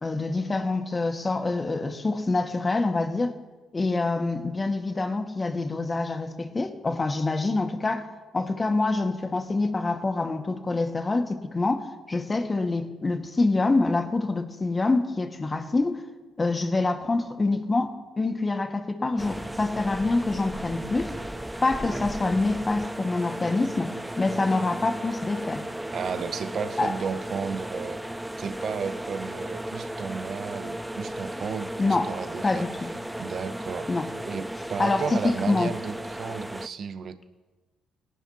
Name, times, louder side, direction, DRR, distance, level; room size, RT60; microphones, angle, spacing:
voice 1, 0.0-3.3 3.7-8.1 8.3-16.0 16.4-21.1 21.6-25.7 26.8-26.9 31.8-32.1 32.4-32.9 33.9-34.1 34.8-35.7, left 3 dB, 30° left, 1.6 m, -26 dB
sound 1, 19.2-36.7, right 1 dB, 5° right, 0.5 m, -35 dB
voice 2, 25.9-32.7 33.2-33.9 34.2-37.3, right 6 dB, 55° right, 0.9 m, -33 dB
21.5 x 11.5 x 2.9 m
hypercardioid pair, 50°, 0 cm